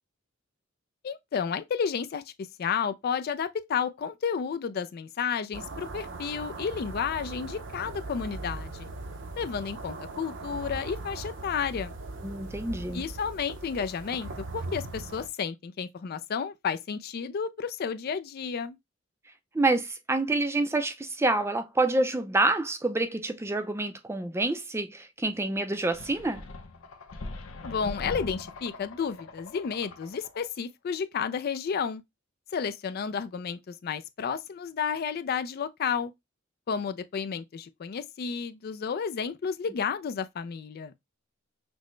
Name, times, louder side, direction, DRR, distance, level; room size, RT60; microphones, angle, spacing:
voice 1, 1.0-8.9 9.4-11.9 12.9-18.8 27.6-32.0 32.5-36.1 36.7-40.9, left 6 dB, 50° left, 0.3 m, -32 dB
sound 1, 5.5-15.3, right 3 dB, 65° right, 0.7 m, -39 dB
voice 2, 12.2-13.0 19.5-26.4, right 2 dB, 15° right, 0.4 m, -27 dB
sound 2, 25.9-30.5, left 2 dB, 85° left, 0.7 m, -41 dB
6.0 x 2.1 x 3.1 m
head